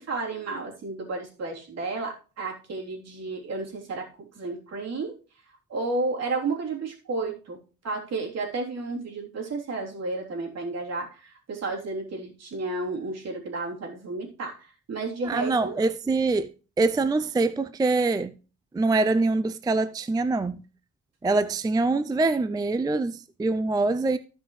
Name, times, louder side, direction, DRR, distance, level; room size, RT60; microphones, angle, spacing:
voice 1, 0.0-4.1 4.4-5.2 5.7-7.6 7.8-15.8, right 3 dB, 55° right, 3.4 m, -32 dB
voice 2, 15.2-16.5 16.8-18.4 18.7-20.6 21.2-24.2, right 3 dB, 15° right, 0.4 m, -24 dB
14.5 x 5.5 x 3.2 m
cardioid pair, 90°, 30 cm